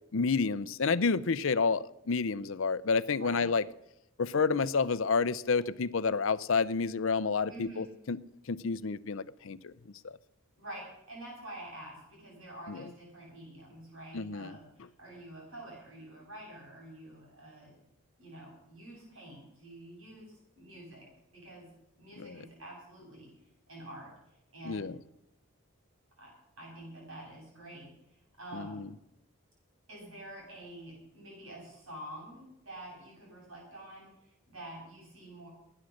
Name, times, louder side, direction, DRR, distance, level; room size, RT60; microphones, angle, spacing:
voice 1, 0.1-3.6 4.2-8.2 8.5-9.7 10.0-10.1 12.7-12.9 14.1-14.6 22.2-22.4 24.6-25.0 28.5-28.9, left 4 dB, 60° left, 16 dB, 0.6 m, -30 dB
voice 2, 3.1-3.5 7.5-7.9 10.6-17.7 18.2-21.7 22.0-23.3 23.7-24.1 24.5-24.9 26.2-27.9 28.4-28.9 29.9-35.5, right 1 dB, 65° right, -2 dB, 7.9 m, -48 dB
18.0 x 9.8 x 6.5 m, 0.83 s
head